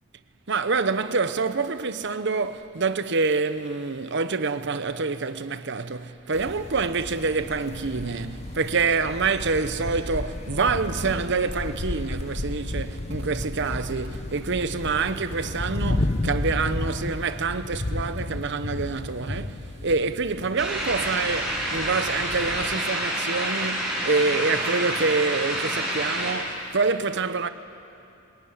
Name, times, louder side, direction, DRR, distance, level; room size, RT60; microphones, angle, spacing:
voice 1, 0.5-27.5, right 4 dB, 60° right, 0.9 m, -26 dB
sound 1, 6.3-22.8, left 1 dB, 35° left, 0.8 m, -33 dB
sound 2, 20.6-26.3, right 1 dB, 5° right, 6.7 m, -28 dB
22.0 x 20.0 x 9.8 m
head